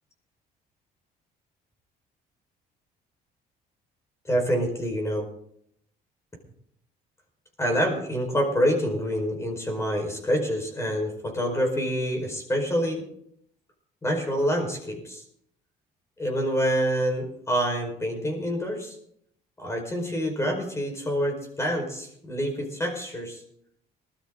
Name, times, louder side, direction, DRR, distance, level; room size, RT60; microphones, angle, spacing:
voice 1, 4.2-5.3 7.6-13.0 14.0-15.2 16.2-19.0 19.6-23.4, equal, 15° left, 3 dB, 4.9 m, -27 dB
20.0 x 12.5 x 3.9 m, 0.70 s
cardioid pair, 110°, 17 cm